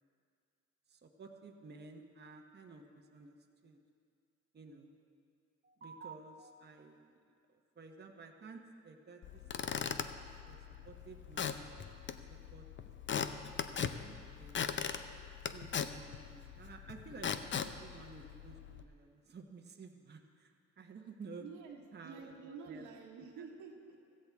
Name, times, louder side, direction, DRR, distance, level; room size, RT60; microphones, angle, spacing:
voice 1, 0.9-3.4 3.6-3.8 4.5-4.9 5.6-7.2 7.5-9.9 10.4-10.6 10.8-11.7 12.3-13.3 13.6-14.9 15.5-21.5 21.9-22.9 23.2-23.4, right 4 dB, 35° right, 2 dB, 1.1 m, -53 dB
Squeak / Wood, 9.2-18.8, left 7 dB, 40° left, 0.6 m, -40 dB
voice 2, 21.4-24.0, right 5 dB, 85° right, 0 dB, 1.8 m, -49 dB
15.0 x 15.0 x 3.6 m, 2.3 s
cardioid pair, 90°, 30 cm